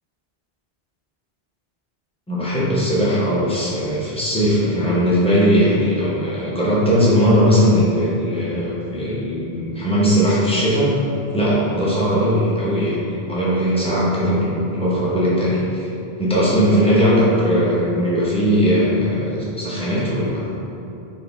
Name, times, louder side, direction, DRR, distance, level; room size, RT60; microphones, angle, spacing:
voice 1, 2.3-11.0 11.3-15.9 16.2-20.5, equal, 5° left, -8 dB, 0.6 m, -19 dB
4.0 x 2.3 x 3.4 m, 2.8 s
omnidirectional pair, 1.1 m